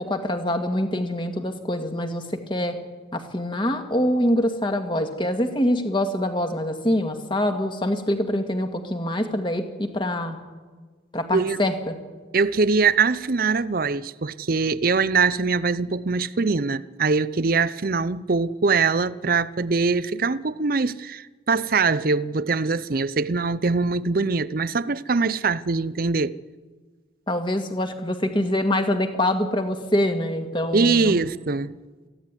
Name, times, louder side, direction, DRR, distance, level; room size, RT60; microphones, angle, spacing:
voice 1, 0.0-2.8 3.1-10.4 11.1-12.0 27.3-31.2, left 1 dB, 25° left, 1.9 m, -25 dB
voice 2, 12.3-26.4 30.7-31.7, right 4 dB, 45° right, 0.6 m, -22 dB
23.0 x 15.5 x 9.7 m
head